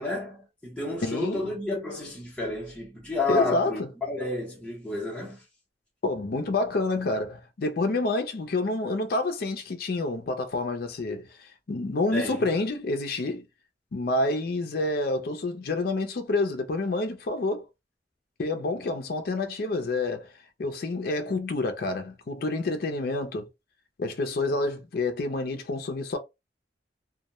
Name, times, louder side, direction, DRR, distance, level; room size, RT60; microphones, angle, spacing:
voice 1, 0.0-3.8 4.1-5.4 12.1-12.4, left 2 dB, 5° left, 0.7 m, -31 dB
voice 2, 1.0-1.5 3.3-3.9 6.0-13.4 13.9-17.6 18.4-20.3 20.6-23.5 24.0-26.2, left 2 dB, 55° left, 0.4 m, -28 dB
2.2 x 2.1 x 2.8 m
head